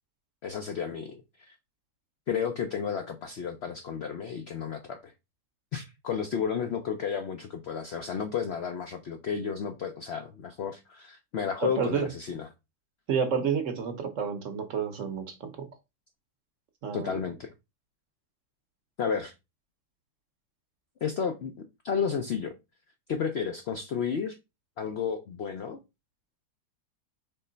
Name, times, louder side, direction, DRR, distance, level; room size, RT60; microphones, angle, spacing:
voice 1, 0.4-1.6 2.3-5.1 5.7-12.5 16.9-17.5 19.0-19.3 21.0-22.6 23.1-24.4 24.8-25.8, left 6 dB, 70° left, 0.6 m, -32 dB
voice 2, 11.6-12.1 13.1-15.7 16.8-17.2, right 6 dB, 60° right, 1.0 m, -30 dB
4.4 x 3.1 x 3.8 m
omnidirectional pair, 1.7 m